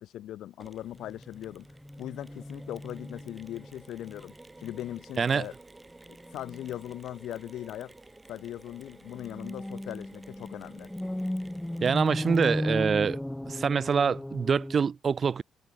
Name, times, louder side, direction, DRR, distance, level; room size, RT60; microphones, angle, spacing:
voice 1, 0.0-1.7 2.0-5.5 6.1-7.9 8.3-10.9, left 12 dB, 80° left, 3.2 m, -40 dB
Mechanisms, 0.6-12.9, right 2 dB, 15° right, 5.1 m, -53 dB
sound 1, 1.0-4.3 4.6-4.9 6.3-6.7 9.1-14.7, left 1 dB, 5° left, 0.7 m, -36 dB
voice 2, 11.8-13.2 13.5-15.4, right 6 dB, 45° right, 1.1 m, -25 dB
cardioid pair, 90°, 0 cm